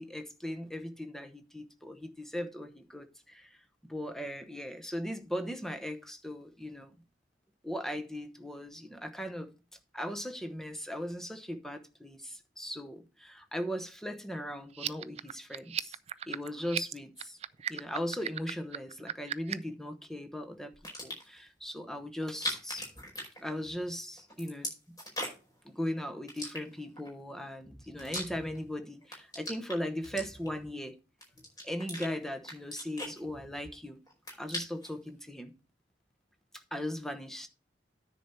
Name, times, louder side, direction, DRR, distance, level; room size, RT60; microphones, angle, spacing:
voice 1, 0.0-3.6 3.8-6.9 7.6-9.5 9.9-16.0 16.3-17.4 17.7-20.7 21.0-22.9 23.4-24.7 25.6-31.0 31.6-34.0 34.4-35.5 36.7-37.5, equal, ahead, 0.9 m, -38 dB
sound 1, 14.7-19.7, right 9 dB, 35° right, 0.4 m, -37 dB
sound 2, 20.7-21.4 22.2-23.9 24.2-25.6 26.3-27.1 27.6-28.7 29.0-30.7 31.2-32.1 32.4-33.8 34.1-35.0, left 1 dB, 20° left, 4.9 m, -40 dB
10.0 x 4.4 x 6.8 m
head